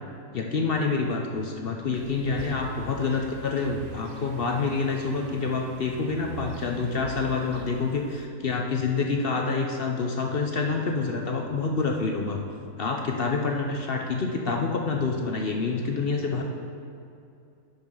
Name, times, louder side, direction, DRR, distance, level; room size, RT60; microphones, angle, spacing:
voice 1, 0.3-12.4 12.8-16.4, left 4 dB, 50° left, 2 dB, 0.8 m, -27 dB
sound 1, 1.9-8.3, right 6 dB, 50° right, 0.7 m, -43 dB
11.0 x 5.5 x 5.4 m, 2.5 s
omnidirectional pair, 1.5 m